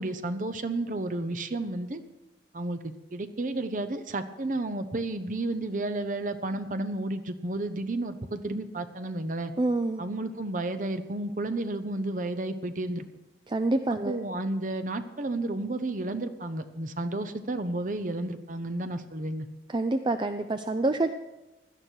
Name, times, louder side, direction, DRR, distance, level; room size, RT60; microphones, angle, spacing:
voice 1, 0.0-2.0 2.5-9.5 10.0-13.0 14.1-19.5, right 2 dB, 50° right, 9 dB, 0.8 m, -32 dB
voice 2, 9.6-10.0 13.5-14.2 19.7-21.1, right 2 dB, 25° right, 8 dB, 0.5 m, -27 dB
17.0 x 12.0 x 4.6 m, 1.0 s
head